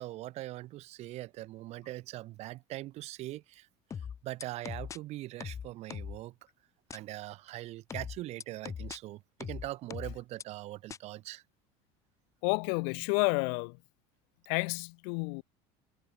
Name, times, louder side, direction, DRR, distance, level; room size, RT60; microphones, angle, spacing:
voice 1, 0.0-3.7 4.2-6.3 6.9-11.4, right 16 dB, 55° right, 5.7 m, -41 dB
sound 1, 3.9-5.0 5.4-6.2 6.9-7.0 7.9-9.0 9.4-10.4 10.9-11.0, left 7 dB, 25° left, 0.5 m, -40 dB
voice 2, 12.4-13.8 14.5-15.4, left 40 dB or more, 80° left, 0.5 m, -30 dB
cardioid pair, 135°, 13 cm